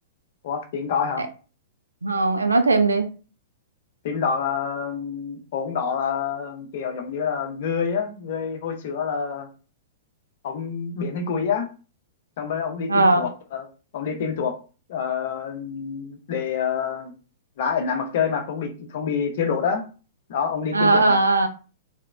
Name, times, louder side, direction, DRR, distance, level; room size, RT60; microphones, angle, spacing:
voice 1, 0.4-1.2 4.0-9.5 10.4-11.7 12.4-13.7 13.9-14.6 14.9-17.1 17.6-19.8 20.3-21.2, left 6 dB, 50° left, 5 dB, 0.6 m, -27 dB
voice 2, 2.0-3.1 12.9-13.2 20.7-21.5, right 3 dB, 80° right, 7 dB, 0.3 m, -18 dB
2.8 x 2.1 x 2.3 m, 0.35 s
figure-of-eight pair, 100°, 0 cm